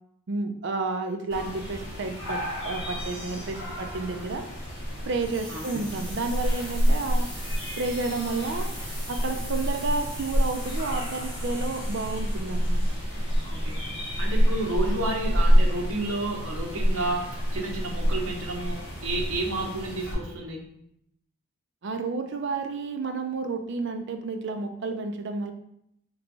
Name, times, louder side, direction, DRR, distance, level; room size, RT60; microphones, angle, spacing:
voice 1, 0.3-4.5 5.1-7.3 7.8-8.7 9.1-12.8 21.8-25.5, right 3 dB, 55° right, 6 dB, 0.4 m, -31 dB
sound 1, 1.3-20.1, equal, 55° left, 1.6 m, -28 dB
sound 2, 5.1-14.0, equal, 5° left, 1.1 m, -43 dB
voice 2, 5.5-5.8 13.4-20.6, right 2 dB, 70° right, 0 dB, 0.8 m, -31 dB
3.4 x 3.1 x 3.9 m, 0.74 s
head